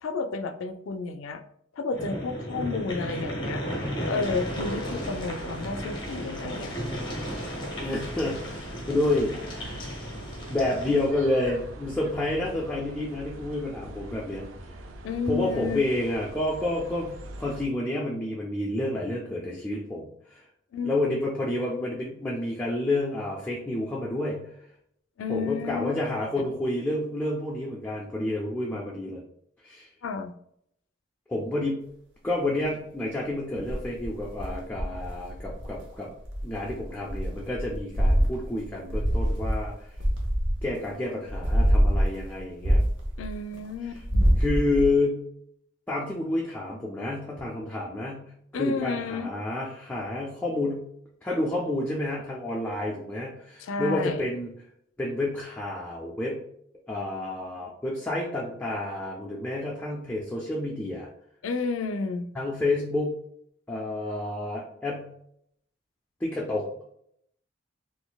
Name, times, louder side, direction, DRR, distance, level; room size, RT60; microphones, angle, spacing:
voice 1, 0.0-1.4 1.7-3.6 4.1-6.7 15.0-15.8 20.7-21.0 25.2-25.9 30.0-30.3 43.2-44.3 48.5-49.3 53.6-54.2 61.4-62.2, left 4 dB, 80° left, 8 dB, 0.4 m, -31 dB
sound 1, 1.9-11.1, equal, 25° left, 0.8 m, -34 dB
sound 2, 4.2-17.6, right 1 dB, 85° right, 0.4 m, -43 dB
voice 2, 7.8-9.7 10.5-14.5 15.3-20.4 20.8-24.5 25.3-29.2 29.6-29.9 31.3-31.8 32.2-36.1 36.4-39.7 40.6-42.8 44.4-45.3 45.9-50.9 51.2-54.5 55.0-56.4 56.9-61.1 62.3-63.2 63.7-65.1 66.2-66.7, left 2 dB, 10° left, -3 dB, 0.4 m, -29 dB
sound 3, 33.5-35.8 36.2-40.9 41.3-43.6 43.9-44.9, equal, 60° right, 0.8 m, -25 dB
3.9 x 2.5 x 2.3 m, 0.71 s
head